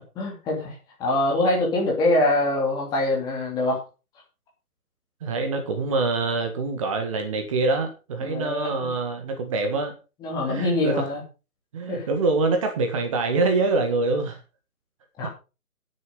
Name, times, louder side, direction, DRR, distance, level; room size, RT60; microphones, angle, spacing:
voice 1, 0.2-3.8 8.2-8.9 10.2-11.2 11.9-12.1 15.2-15.3, left 2 dB, 10° left, -2 dB, 2.7 m, -24 dB
voice 2, 5.2-9.9 10.5-11.0 11.7-14.4, right 3 dB, 20° right, 5 dB, 1.6 m, -25 dB
11.0 x 8.9 x 5.0 m, 0.31 s
figure-of-eight pair, 145°, 44 cm